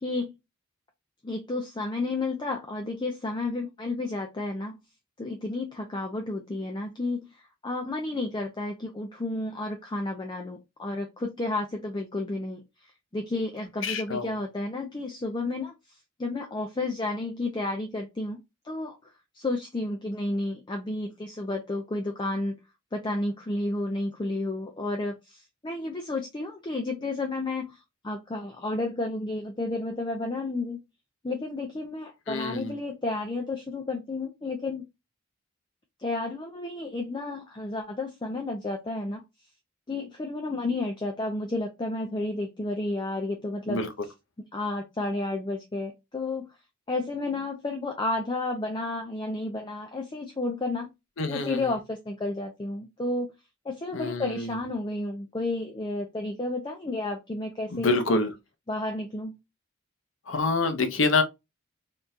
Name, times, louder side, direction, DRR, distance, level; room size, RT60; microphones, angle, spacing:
voice 1, 0.0-0.3 1.2-4.8 5.2-15.7 16.2-22.6 22.9-30.8 31.2-34.8 36.0-39.2 39.9-43.8 44.5-46.5 46.9-50.9 51.3-53.3 53.6-58.2 58.7-59.4, left 2 dB, 20° left, 0.4 m, -32 dB
voice 2, 13.8-14.3 32.3-32.8 43.7-43.9 51.2-51.7 53.9-54.6 57.7-58.3 60.3-61.2, left 3 dB, 65° left, 0.7 m, -26 dB
3.6 x 2.7 x 2.3 m
head